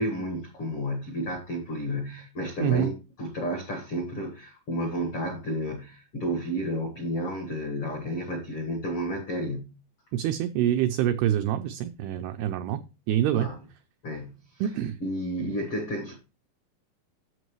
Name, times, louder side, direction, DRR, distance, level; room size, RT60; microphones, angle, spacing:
voice 1, 0.0-9.7 13.3-13.6 14.0-14.6 15.0-16.2, equal, 75° left, 1.3 m, -31 dB
voice 2, 10.1-12.8 13.1-13.5 14.6-15.0, right 11 dB, 90° right, 2.2 m, -26 dB
11.0 x 7.4 x 3.1 m
omnidirectional pair, 5.1 m